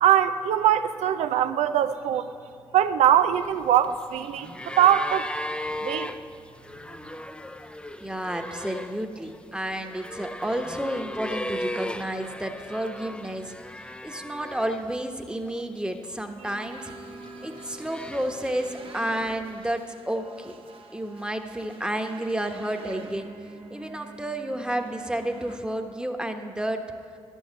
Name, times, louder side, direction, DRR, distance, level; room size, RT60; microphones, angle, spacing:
voice 1, 0.0-2.3 2.7-5.3 5.8-6.1, right 10 dB, 80° right, 11 dB, 0.5 m, -22 dB
sound 1, 3.3-15.0 15.3-16.2 17.0-18.7 19.7-19.8, left 1 dB, 10° left, 0.6 m, -37 dB
voice 2, 8.0-13.5 14.0-16.9 17.4-20.5 20.9-23.3 23.7-26.8, right 1 dB, 10° right, 4 dB, 1.2 m, -31 dB
sound 2, 16.4-25.6, right 3 dB, 55° right, 1.2 m, -45 dB
11.0 x 7.2 x 7.5 m, 2.2 s
supercardioid pair, 40°, 11 cm